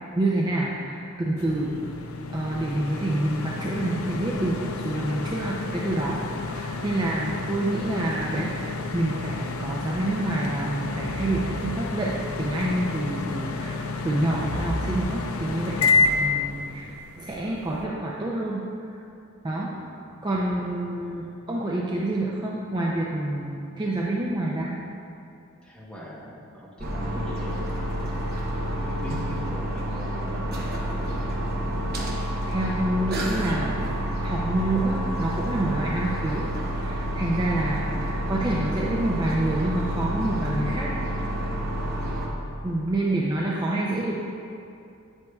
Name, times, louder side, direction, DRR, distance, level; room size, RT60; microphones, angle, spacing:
voice 1, 0.2-1.7 2.3-13.8 14.0-15.9 16.2-16.9 17.2-18.6 19.4-19.7 20.2-24.7 32.5-36.5 36.7-40.9 42.6-44.2, right 1 dB, 20° right, -4 dB, 0.5 m, -27 dB
sound 1, 1.4-17.8, left 4 dB, 90° left, 0.5 m, -30 dB
Crowd, 4.3-15.0, right 1 dB, 85° right, 0.8 m, -41 dB
voice 2, 15.8-16.1 19.6-19.8 25.6-27.6 28.6-31.3, left 1 dB, 5° left, -5 dB, 1.0 m, -41 dB
sound 2, 26.8-42.3, equal, 45° right, 0.9 m, -29 dB
8.3 x 8.1 x 2.3 m, 2.6 s
head